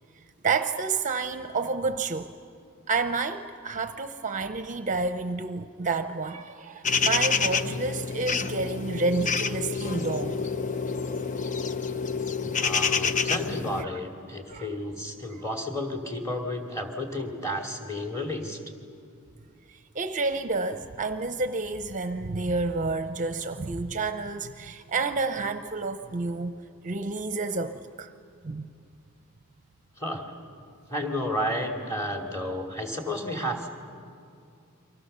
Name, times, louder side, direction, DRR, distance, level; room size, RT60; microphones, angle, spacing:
voice 1, 0.4-2.3 2.9-10.5 13.8-14.0 14.5-14.7 15.4-15.5 19.7-26.6 26.8-28.1 28.4-28.7, right 3 dB, 35° right, 9 dB, 0.7 m, -30 dB
sound 1, 6.8-13.8, left 5 dB, 35° left, 0.6 m, -28 dB
voice 2, 12.6-18.6 30.0-30.3 30.9-33.7, left 1 dB, 15° left, 2 dB, 2.6 m, -32 dB
29.5 x 24.0 x 6.8 m, 2.4 s
head